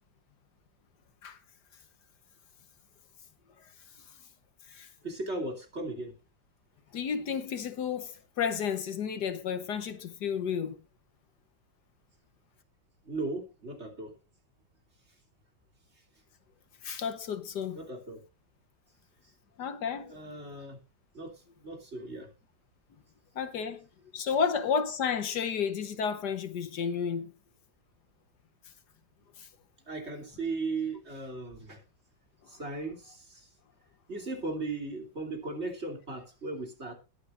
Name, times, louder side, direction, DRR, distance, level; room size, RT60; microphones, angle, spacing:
voice 1, 5.0-6.1 13.0-14.1 17.7-18.2 20.1-20.8 21.1-22.3 29.9-31.8 32.5-33.5 34.1-36.9, right 3 dB, 35° right, 3.3 m, -37 dB
voice 2, 6.9-10.8 16.8-17.8 19.6-20.2 23.3-23.8 24.1-27.3 29.4-29.5, left 7 dB, 65° left, 1.5 m, -32 dB
21.0 x 8.4 x 2.5 m
omnidirectional pair, 1.9 m